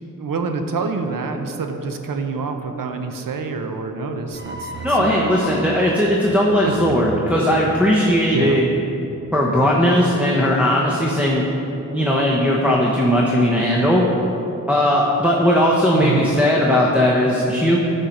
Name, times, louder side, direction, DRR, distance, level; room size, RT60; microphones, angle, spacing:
voice 1, 0.2-5.6 6.6-7.0 8.3-8.6 15.9-16.3, right 4 dB, 85° right, 5 dB, 0.7 m, -27 dB
sound 1, 4.3-9.5, right 2 dB, 35° right, 1.0 m, -37 dB
voice 2, 4.8-8.7 9.3-11.4 11.9-14.0 14.7-17.8, equal, 5° right, -4 dB, 0.9 m, -18 dB
11.0 x 4.4 x 5.2 m, 3.0 s
wide cardioid pair, 80°, 32 cm